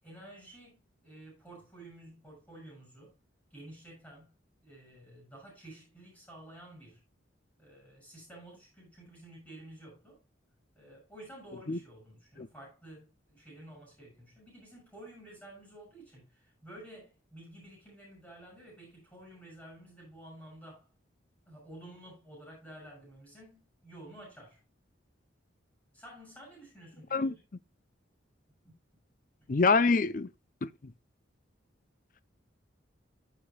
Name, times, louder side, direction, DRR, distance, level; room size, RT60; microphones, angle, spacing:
voice 1, 0.0-3.1 3.5-4.3 4.6-7.0 7.6-10.2 10.7-20.9 21.5-24.6 25.9-27.4 28.6-28.7, right 1 dB, 5° left, 6.9 m, -51 dB
voice 2, 29.5-30.3 30.6-30.7, left 4 dB, 40° left, 0.5 m, -25 dB
15.5 x 6.8 x 2.3 m
head